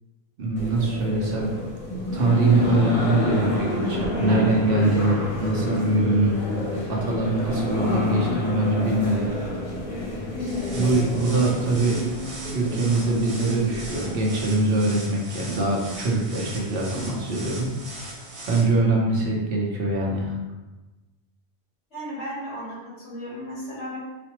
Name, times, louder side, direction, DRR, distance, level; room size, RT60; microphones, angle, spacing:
voice 1, 0.4-1.5 2.1-6.4 6.9-9.3 10.7-12.0 12.5-17.7 18.5-20.4, right 2 dB, 65° right, -2 dB, 0.8 m, -23 dB
sound 1, 0.6-14.5, left 2 dB, 40° left, 0.6 m, -29 dB
sound 2, 10.5-18.6, right 2 dB, 80° right, 1.2 m, -39 dB
voice 2, 21.9-24.0, equal, 85° left, -8 dB, 1.7 m, -35 dB
4.1 x 2.0 x 2.9 m, 1.1 s
omnidirectional pair, 1.1 m